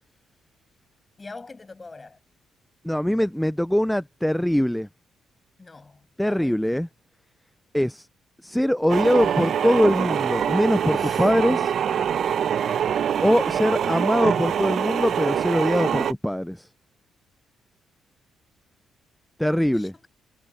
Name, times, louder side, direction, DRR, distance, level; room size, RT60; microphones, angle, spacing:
voice 1, 1.2-2.2 5.6-6.7 10.9-11.3 19.7-20.1, left 3 dB, 25° left, 7.2 m, -43 dB
voice 2, 2.8-4.9 6.2-6.9 7.7-8.1 8.4-11.7 13.2-16.7 19.4-19.9, equal, 5° left, 0.3 m, -22 dB
sound 1, 8.9-16.1, right 8 dB, 60° right, 0.7 m, -24 dB
cardioid pair, 90°, 0 cm